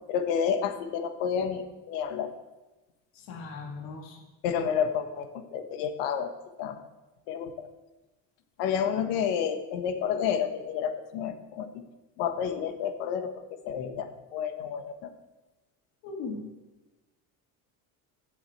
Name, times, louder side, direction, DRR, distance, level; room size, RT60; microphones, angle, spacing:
voice 1, 0.1-2.3 4.4-6.3 6.6-6.8 7.3-7.7 8.6-11.7 12.2-15.1, left 7 dB, 90° left, 8 dB, 1.3 m, -30 dB
voice 2, 3.1-4.2 16.0-16.4, left 4 dB, 60° left, 0 dB, 2.2 m, -38 dB
7.8 x 7.3 x 7.8 m, 1.1 s
cardioid pair, 170°, 40 cm